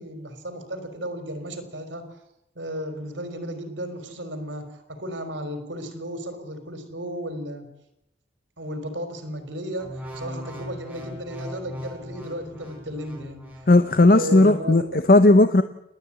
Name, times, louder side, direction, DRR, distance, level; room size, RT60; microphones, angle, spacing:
voice 1, 0.0-2.2 2.5-7.7 8.6-13.7 14.1-15.1, equal, 85° right, 8 dB, 4.0 m, -34 dB
sound 1, 9.8-14.1 14.7-14.9, equal, 10° right, 4.7 m, -39 dB
voice 2, 13.7-14.8 15.1-15.6, left 2 dB, 50° left, 10 dB, 0.7 m, -15 dB
29.5 x 10.0 x 8.7 m, 0.83 s
head